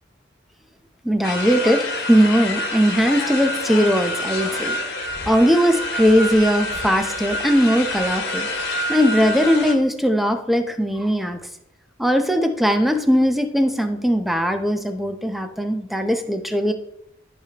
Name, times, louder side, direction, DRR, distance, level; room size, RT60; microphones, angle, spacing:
voice 1, 1.0-4.8 5.3-8.5 8.9-11.4 12.0-16.7, equal, ahead, 6 dB, 0.6 m, -19 dB
sound 1, 1.2-9.7, left 1 dB, 60° left, 1.4 m, -27 dB
13.0 x 5.0 x 2.9 m, 0.78 s
head